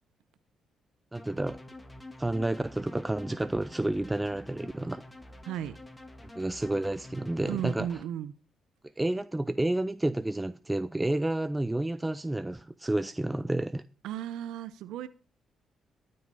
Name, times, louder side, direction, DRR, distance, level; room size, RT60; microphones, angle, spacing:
sound 1, 1.1-8.0, left 1 dB, 15° left, 1.8 m, -48 dB
voice 1, 1.1-1.6 2.2-5.0 6.4-7.9 9.0-13.8, right 1 dB, 10° right, 0.5 m, -30 dB
voice 2, 5.4-5.8 7.4-8.3 14.0-15.1, right 11 dB, 85° right, 0.6 m, -35 dB
13.0 x 7.8 x 5.5 m
cardioid pair, 90°, 0 cm